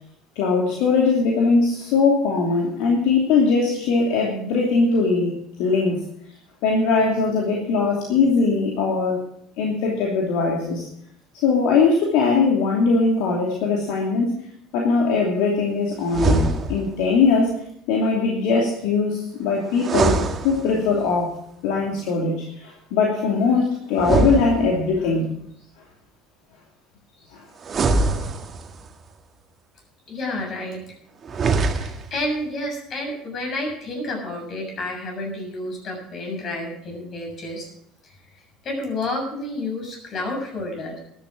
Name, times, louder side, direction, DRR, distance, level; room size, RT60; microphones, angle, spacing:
voice 1, 0.4-6.0 6.6-9.2 9.6-10.9 11.4-14.3 14.7-17.5 17.9-20.2 20.4-21.3 21.6-25.3 27.3-27.4, left 4 dB, 65° left, -2 dB, 2.8 m, -20 dB
sound 1, 16.1-17.0 19.7-21.1 23.9-25.1 27.6-28.9 31.2-32.2, right 3 dB, 35° right, 1.8 m, -23 dB
voice 2, 30.1-30.9 31.7-37.7 38.6-41.0, left 1 dB, 45° left, 3 dB, 7.1 m, -30 dB
13.0 x 11.5 x 6.1 m, 0.69 s
hypercardioid pair, 70°, 0 cm